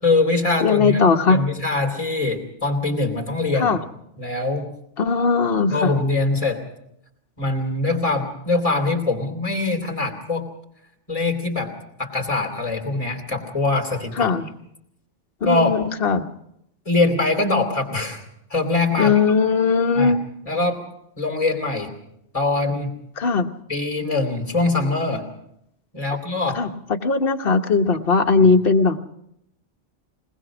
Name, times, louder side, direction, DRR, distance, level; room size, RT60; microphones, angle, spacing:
voice 1, 0.0-3.8 4.2-4.7 5.7-6.6 7.4-10.4 11.1-11.7 12.0-14.3 15.4-15.7 16.8-18.2 18.5-19.1 19.9-20.1 20.4-20.8 21.2-21.9 22.3-23.0 23.7-25.3 25.9-26.6 28.4-28.5, left 2 dB, 30° left, 3 dB, 3.2 m, -23 dB
voice 2, 0.6-1.4 3.6-3.8 5.0-6.0 14.2-14.5 15.4-16.3 19.0-20.2 23.2-23.5 26.5-29.0, left 4 dB, 55° left, 4 dB, 1.3 m, -19 dB
21.0 x 20.0 x 6.1 m, 0.77 s
omnidirectional pair, 1.2 m